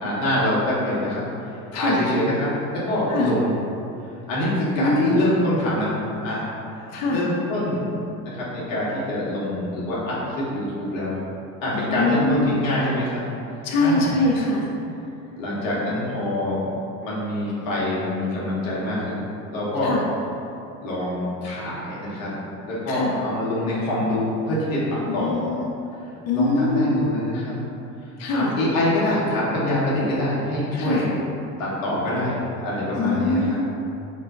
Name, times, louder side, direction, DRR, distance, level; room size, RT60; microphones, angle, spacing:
voice 1, 0.0-3.5 4.3-6.5 7.1-8.0 8.2-11.2 11.6-13.2 13.8-14.1 15.4-16.6 17.0-19.2 19.5-19.9 20.8-22.4 22.7-25.5 26.3-27.5 28.3-31.2 31.6-33.6, left 1 dB, 85° left, -7 dB, 1.1 m, -25 dB
voice 2, 4.8-5.3 6.9-7.2 11.7-12.6 13.6-14.7 19.8-20.0 22.9-23.1 25.1-25.7 26.3-27.1 28.2-28.5 30.8-31.1 32.9-33.6, left 2 dB, 40° left, -2 dB, 0.6 m, -23 dB
3.1 x 2.1 x 4.0 m, 2.7 s
hypercardioid pair, 80°, 39 cm